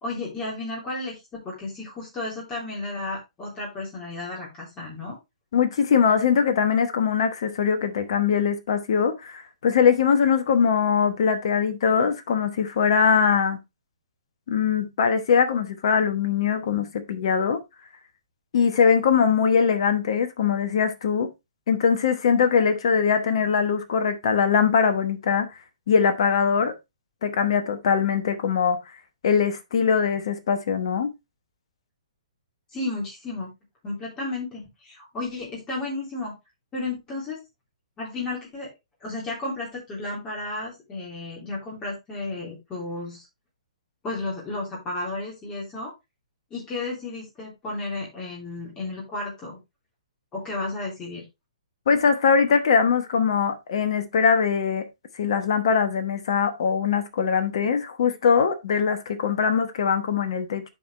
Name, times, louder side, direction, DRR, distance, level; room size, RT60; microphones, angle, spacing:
voice 1, 0.0-5.2 32.7-33.5 33.8-36.3 36.7-37.4 38.0-38.7 39.0-43.3 44.0-45.9 46.5-49.6 50.3-51.2, left 2 dB, 20° left, 3.2 m, -33 dB
voice 2, 5.5-13.6 14.5-17.6 18.5-21.3 21.7-25.5 25.9-26.7 27.2-28.8 29.2-31.1 51.9-54.9 55.1-60.7, left 6 dB, 50° left, 1.0 m, -22 dB
10.5 x 4.7 x 3.2 m
figure-of-eight pair, 125°, 4 cm